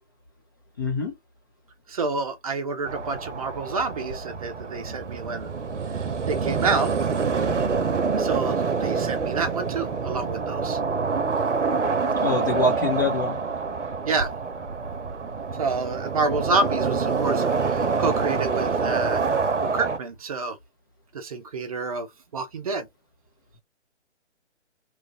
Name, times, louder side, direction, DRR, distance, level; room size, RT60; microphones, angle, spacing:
voice 1, 0.8-1.1 12.2-13.4, left 2 dB, 20° left, 0.4 m, -25 dB
voice 2, 1.9-5.5 5.9-6.9 8.2-10.8 14.1-14.3 15.6-19.3 19.6-20.6 21.1-22.1 22.3-22.9, right 4 dB, 30° right, 0.6 m, -28 dB
sound 1, 2.8-20.0, right 5 dB, 80° right, 0.8 m, -26 dB
3.1 x 2.4 x 2.7 m
figure-of-eight pair, 135°, 35 cm